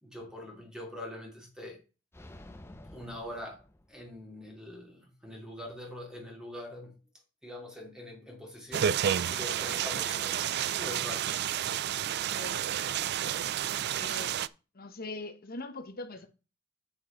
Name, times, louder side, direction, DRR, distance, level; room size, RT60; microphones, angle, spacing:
voice 1, 0.0-1.8 2.9-3.6 3.9-7.0 7.4-8.9 9.3-11.6, left 1 dB, 5° right, 2.6 m, -43 dB
sound 1, 2.1-4.3, left 1 dB, 10° left, 0.7 m, -51 dB
sound 2, 8.7-14.5, right 10 dB, 55° right, 0.4 m, -30 dB
voice 2, 12.3-12.7 13.9-14.4 14.7-16.3, left 2 dB, 50° left, 1.1 m, -41 dB
8.0 x 7.7 x 3.9 m
head